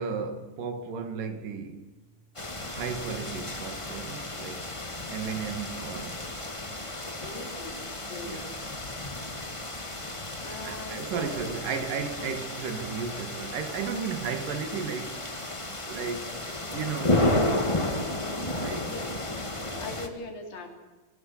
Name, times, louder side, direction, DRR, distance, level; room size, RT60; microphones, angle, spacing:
voice 1, 0.0-1.9 2.6-4.7 5.1-6.3 8.2-8.5 10.7-17.6 18.6-18.9, right 6 dB, 75° right, 3.7 m, -35 dB
sound 1, 2.3-20.1, left 1 dB, 15° left, 1.0 m, -32 dB
voice 2, 7.2-8.5 10.4-11.5 18.8-20.7, left 2 dB, 90° left, 5.5 m, -41 dB
26.5 x 26.0 x 5.9 m
omnidirectional pair, 3.9 m